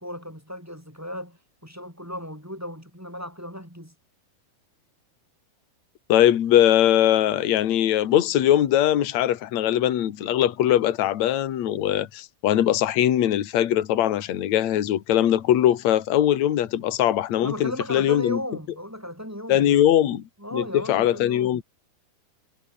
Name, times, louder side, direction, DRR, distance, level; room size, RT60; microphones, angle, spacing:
voice 1, 0.0-3.9 17.4-19.9 20.4-21.6, equal, 5° right, 4.2 m, -36 dB
voice 2, 6.1-18.4 19.5-20.2 20.5-21.6, left 11 dB, 50° left, 2.6 m, -21 dB
omnidirectional pair, 4.7 m